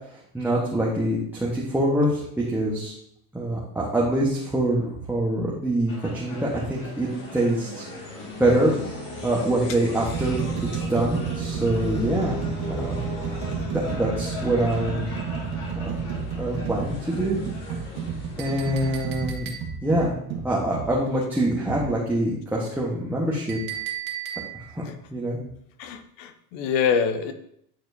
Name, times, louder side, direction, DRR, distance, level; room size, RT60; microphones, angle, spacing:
voice 1, 0.3-2.9 3.3-8.7 9.2-10.4 10.7-12.4 12.7-13.1 13.6-15.1 15.7-15.9 16.4-17.4 18.4-19.5 19.8-23.6 24.5-25.4, right 1 dB, 5° right, -5 dB, 1.2 m, -25 dB
sound 1, 5.9-19.0, left 2 dB, 40° left, 2.4 m, -38 dB
sound 2, 7.7-7.9 8.8-9.0 9.6-20.9 21.7-21.9, right 6 dB, 50° right, 1.6 m, -31 dB
Chink clink, 18.4-20.0 23.5-24.8, right 10 dB, 65° right, 1.4 m, -36 dB
voice 2, 25.8-27.3, left 6 dB, 60° left, 9 dB, 0.9 m, -25 dB
9.2 x 4.2 x 2.7 m, 0.71 s
supercardioid pair, 105°, 48 cm